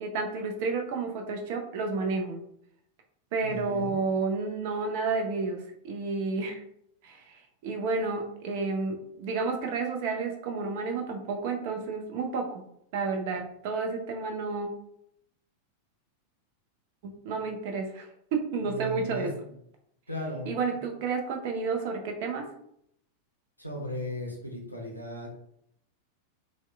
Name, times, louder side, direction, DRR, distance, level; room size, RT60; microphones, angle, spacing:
voice 1, 0.0-2.4 3.3-6.6 7.0-7.2 7.6-12.6 12.9-14.7 17.0-18.1 18.3-19.3 20.5-22.4, right 4 dB, 50° right, 3 dB, 0.4 m, -31 dB
voice 2, 3.4-3.9 18.6-19.6 20.1-20.6 23.6-25.4, left 1 dB, 90° left, -1 dB, 0.4 m, -36 dB
2.8 x 2.0 x 2.2 m, 0.74 s
figure-of-eight pair, 90°, 0 cm